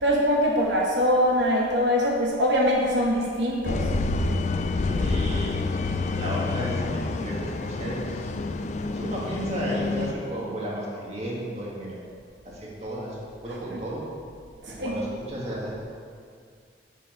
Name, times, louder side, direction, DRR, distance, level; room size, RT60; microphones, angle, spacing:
voice 1, 0.0-3.9 14.6-15.0, equal, 80° right, -2 dB, 1.0 m, -23 dB
sound 1, 3.6-10.1, left 3 dB, 40° left, 0.3 m, -28 dB
voice 2, 4.9-5.6 6.0-8.4 8.9-12.0 12.4-14.0 14.7-15.8, right 1 dB, 35° right, -5 dB, 1.9 m, -33 dB
7.1 x 7.0 x 5.2 m, 2.2 s
head